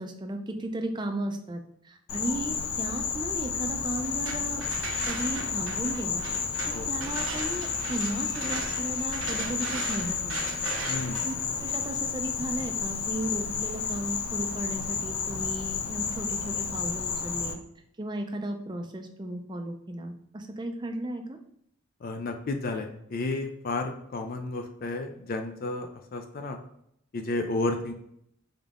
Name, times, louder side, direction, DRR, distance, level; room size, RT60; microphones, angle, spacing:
voice 1, 0.0-1.6 1.8-4.6 5.1-6.2 6.7-10.4 11.2-17.6 18.0-21.4, right 1 dB, 20° right, 4 dB, 0.4 m, -35 dB
Insect, 2.1-17.5, left 6 dB, 85° left, 0.6 m, -31 dB
sound 1, 4.0-13.8, right 4 dB, 65° right, 0.7 m, -39 dB
voice 2, 10.8-11.2 22.0-26.6 27.1-27.9, left 2 dB, 45° left, 5 dB, 0.4 m, -32 dB
3.9 x 3.6 x 3.6 m, 0.74 s
head